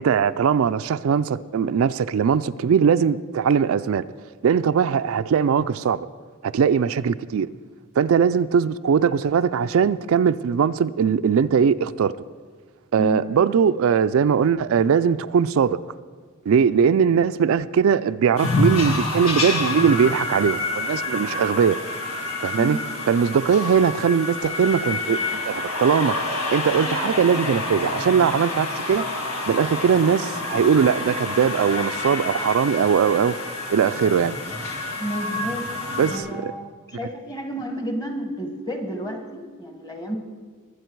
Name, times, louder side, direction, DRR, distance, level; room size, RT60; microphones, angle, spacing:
voice 1, 0.0-4.0 4.4-6.1 6.4-7.5 8.0-12.1 12.9-15.8 16.5-21.8 22.4-22.8 23.1-26.2 26.5-29.1 29.5-33.3 33.7-34.4 36.0-36.5, right 7 dB, 70° right, 12 dB, 0.3 m, -20 dB
sound 1, 18.4-36.2, left 2 dB, 85° left, 2.0 m, -28 dB
voice 2, 35.0-35.7 36.1-40.2, right 1 dB, 20° left, 5 dB, 1.4 m, -30 dB
21.5 x 8.3 x 4.6 m, 1.5 s
head